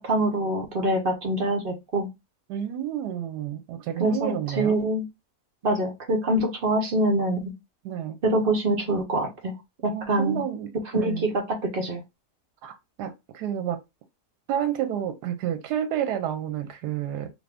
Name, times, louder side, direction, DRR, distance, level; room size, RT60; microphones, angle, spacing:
voice 1, 0.0-2.1 4.0-5.0 5.6-7.5 8.2-9.5 9.8-10.4 10.9-12.0, right 1 dB, 55° right, 0.6 m, -25 dB
voice 2, 2.5-4.8 7.8-8.2 9.8-11.3 12.6-13.8 14.5-17.3, right 10 dB, 80° right, 1.2 m, -30 dB
2.7 x 2.6 x 3.3 m
omnidirectional pair, 1.7 m